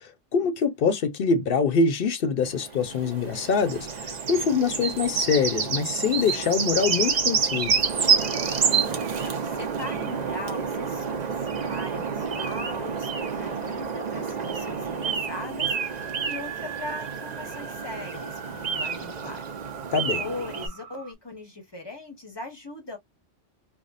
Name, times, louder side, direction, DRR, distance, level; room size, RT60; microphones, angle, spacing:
voice 1, 0.0-7.8 19.9-20.2, left 5 dB, 55° left, 0.8 m, -24 dB
sound 1, 2.5-20.7, right 6 dB, 45° right, 0.6 m, -28 dB
voice 2, 9.2-11.2 11.6-19.6 20.2-23.0, left 2 dB, 25° left, 0.8 m, -39 dB
sound 2, 15.6-21.1, right 8 dB, 80° right, 1.0 m, -41 dB
3.5 x 2.1 x 2.5 m
omnidirectional pair, 1.2 m